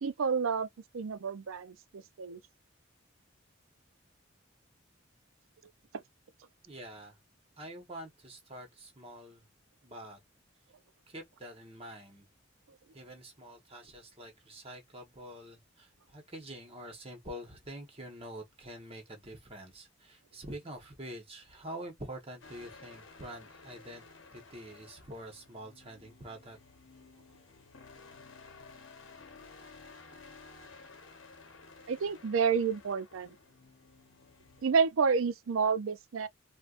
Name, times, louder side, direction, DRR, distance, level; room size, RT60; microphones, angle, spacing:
voice 1, 0.0-0.7 0.9-2.4 31.9-33.3 34.6-36.3, right 5 dB, 90° right, 0.5 m, -29 dB
voice 2, 6.6-7.2 7.6-9.5 9.8-10.2 11.1-12.3 12.9-24.0 24.3-26.6, right 1 dB, 30° right, 1.1 m, -46 dB
sound 1, 22.4-34.7, left 4 dB, 70° left, 0.8 m, -54 dB
4.3 x 2.2 x 2.4 m
head